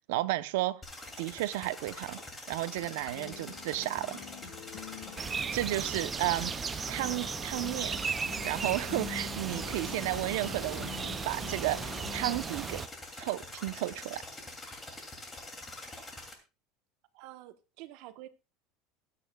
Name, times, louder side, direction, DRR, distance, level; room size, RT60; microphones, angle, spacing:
voice 1, 0.1-0.8 1.2-2.2 2.5-4.2 5.5-6.5 6.9-8.0 8.4-12.8 13.2-14.2, right 16 dB, 85° right, 0.8 m, -33 dB
sound 1, 0.8-16.3, left 2 dB, 15° left, 2.8 m, -45 dB
sound 2, 2.7-12.5, left 8 dB, 80° left, 2.1 m, -46 dB
sound 3, 5.2-12.9, right 6 dB, 20° right, 0.5 m, -36 dB
voice 2, 17.1-18.3, right 15 dB, 65° right, 1.2 m, -48 dB
22.5 x 8.7 x 2.4 m
cardioid pair, 145°, 0 cm